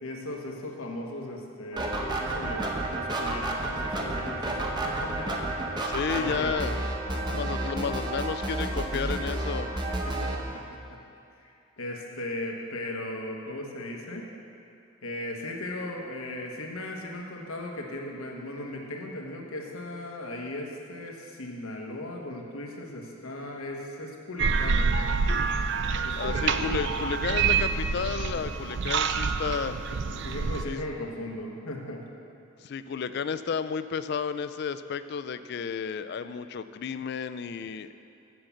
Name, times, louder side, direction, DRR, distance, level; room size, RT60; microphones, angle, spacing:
voice 1, 0.0-5.3 6.1-6.7 7.0-7.4 10.0-10.4 11.4-14.2 15.0-25.0 26.0-26.8 30.1-32.0, left 1 dB, 85° left, 0 dB, 1.3 m, -37 dB
sound 1, 1.7-10.4, right 2 dB, 20° right, 0.7 m, -31 dB
voice 2, 5.9-6.8 7.3-9.7 26.2-29.8 30.7-30.8 32.6-37.9, left 6 dB, 50° left, 12 dB, 0.3 m, -32 dB
sound 2, 24.4-30.6, right 5 dB, 55° right, 0.4 m, -27 dB
7.7 x 7.0 x 7.3 m, 2.6 s
head